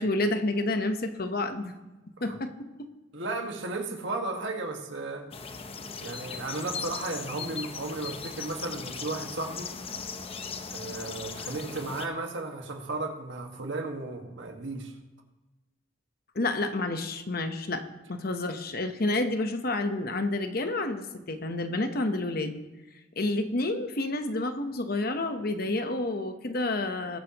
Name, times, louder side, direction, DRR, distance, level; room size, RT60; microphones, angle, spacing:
voice 1, 0.0-1.7 2.2-2.5 16.3-22.6 23.2-27.2, left 2 dB, 55° left, 7 dB, 1.0 m, -29 dB
voice 2, 3.1-5.3 6.0-9.7 10.7-14.9, right 2 dB, 80° right, 3 dB, 1.7 m, -34 dB
sound 1, 5.3-12.1, left 5 dB, 30° left, 0.7 m, -38 dB
21.0 x 8.7 x 3.0 m, 1.1 s
head